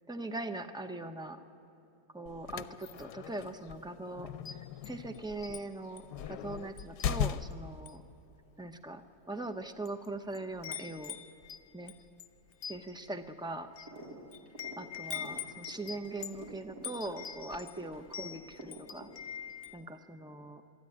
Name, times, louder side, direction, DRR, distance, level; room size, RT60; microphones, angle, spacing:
voice 1, 0.1-1.4 2.1-8.0 8.6-9.0 9.3-11.2 11.7-11.9 12.7-13.7 14.8-19.1 19.7-20.6, right 2 dB, 5° right, 7 dB, 0.5 m, -41 dB
sound 1, 2.3-7.8, left 9 dB, 85° left, 1.3 m, -38 dB
Wind chime, 4.3-5.6 6.0-6.2 6.8-7.5 7.8-8.1 8.8-8.9 9.6-10.1 10.3-19.8, left 8 dB, 45° left, 0.8 m, -44 dB
sound 2, 13.9-14.2 14.4-18.3 18.6-19.5, right 1 dB, 70° right, 4.4 m, -49 dB
23.0 x 13.5 x 9.9 m, 2.8 s
omnidirectional pair, 1.7 m